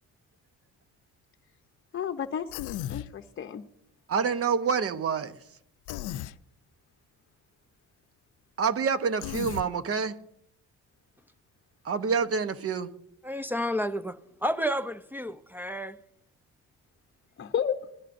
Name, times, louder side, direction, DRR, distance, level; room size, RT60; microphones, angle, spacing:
voice 1, 1.9-3.6 17.4-17.8, left 8 dB, 40° left, 0.7 m, -32 dB
Human voice, 2.5-3.1 5.9-6.3 9.2-9.7, left 13 dB, 85° left, 0.5 m, -35 dB
voice 2, 4.1-5.4 8.6-10.2 11.8-12.9, right 6 dB, 50° right, 1.0 m, -27 dB
voice 3, 13.2-16.0, equal, 5° right, 0.5 m, -31 dB
18.5 x 12.0 x 2.6 m
cardioid pair, 90°, 30 cm